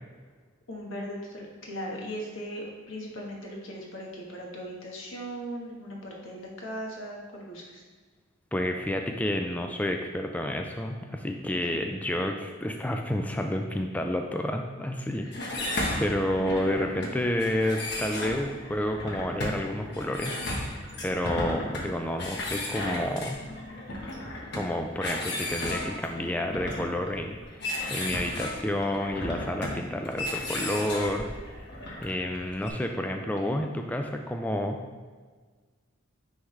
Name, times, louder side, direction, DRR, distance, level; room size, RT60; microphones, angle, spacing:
voice 1, 0.7-7.8 11.5-11.9 15.2-15.5 33.4-33.7, equal, 80° left, -1 dB, 1.3 m, -39 dB
voice 2, 8.5-15.3 16.0-20.7 21.0-23.4 24.5-31.3 32.0-34.8, left 1 dB, 10° left, 3 dB, 0.3 m, -30 dB
sound 1, 15.3-32.7, left 1 dB, 55° left, 1.1 m, -34 dB
9.5 x 3.6 x 3.2 m, 1.5 s
head